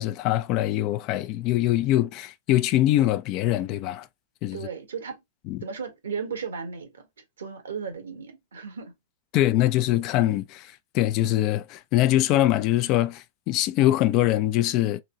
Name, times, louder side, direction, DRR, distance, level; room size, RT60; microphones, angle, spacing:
voice 1, 0.0-4.1 4.4-4.6 5.5-5.6 9.3-15.0, left 14 dB, 45° left, 0.5 m, -23 dB
voice 2, 4.5-5.2 5.6-7.0 7.4-8.9, right 6 dB, 85° right, 1.5 m, -35 dB
3.9 x 3.0 x 3.2 m
hypercardioid pair, 115°, 0 cm